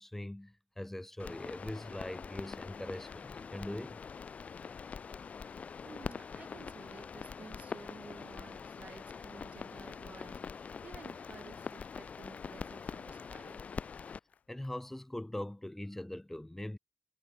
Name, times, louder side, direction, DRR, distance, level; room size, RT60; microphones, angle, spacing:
voice 1, 0.0-4.0 14.5-16.8, left 1 dB, 10° left, 3.5 m, -42 dB
sound 1, 1.2-14.2, left 6 dB, 65° left, 0.9 m, -44 dB
voice 2, 5.8-13.6, right 5 dB, 65° right, 6.1 m, -53 dB
Applause, 9.7-15.0, left 7 dB, 85° left, 8.0 m, -62 dB
cardioid pair, 70°, 3 cm